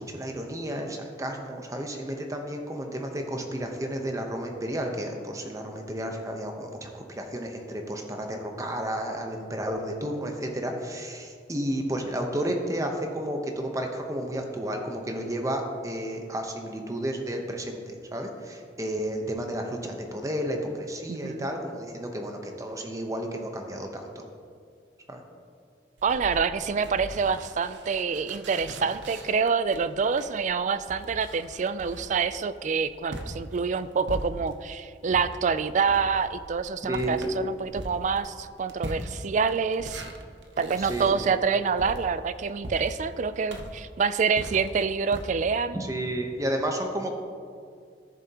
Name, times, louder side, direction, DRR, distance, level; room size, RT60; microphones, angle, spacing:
voice 1, 0.0-24.2 25.1-25.2 36.9-37.2 40.8-41.2 45.7-47.1, right 1 dB, 20° right, 3 dB, 0.9 m, -32 dB
voice 2, 21.1-21.5 26.0-40.0 40.6-45.8, right 5 dB, 45° right, 13 dB, 0.3 m, -27 dB
sound 1, 26.0-34.7 35.1-45.2, right 1 dB, 80° right, 0.8 m, -41 dB
14.0 x 7.0 x 2.9 m, 2.2 s
head